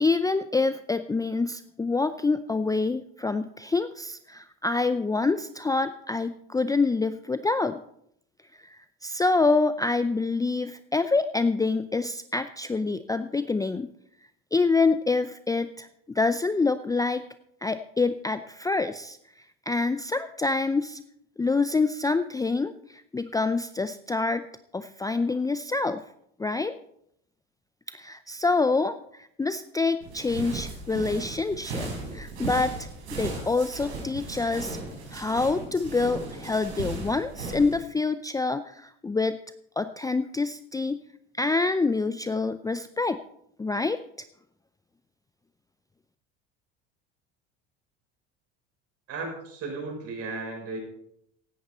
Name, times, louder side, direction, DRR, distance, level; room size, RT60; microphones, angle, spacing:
voice 1, 0.0-7.8 8.5-13.9 14.5-17.2 17.6-19.2 19.7-21.0 21.4-24.4 24.7-26.0 26.4-26.8 27.9-34.8 35.1-39.4 39.8-41.0 41.4-43.2 43.6-44.0, left 3 dB, 10° left, 12 dB, 0.5 m, -26 dB
sound 1, 30.0-37.7, right 3 dB, 90° right, 5.7 m, -36 dB
voice 2, 49.1-50.8, right 3 dB, 50° right, 1 dB, 6.6 m, -35 dB
16.0 x 11.5 x 4.3 m, 0.71 s
supercardioid pair, 85°, 32 cm